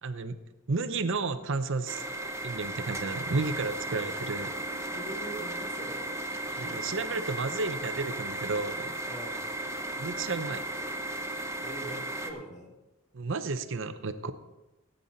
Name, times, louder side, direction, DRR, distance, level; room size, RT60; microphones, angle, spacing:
voice 1, 0.0-0.4 0.7-2.0 2.4-4.5 6.6-8.9 10.0-10.6 13.1-14.3, right 3 dB, 65° right, 10 dB, 0.7 m, -32 dB
sound 1, 1.9-12.3, right 1 dB, 15° right, 0.9 m, -35 dB
voice 2, 4.9-6.0 6.5-7.5 9.1-9.6 11.6-12.7, right 1 dB, 35° left, 0 dB, 2.4 m, -44 dB
15.5 x 9.2 x 4.0 m, 1.0 s
head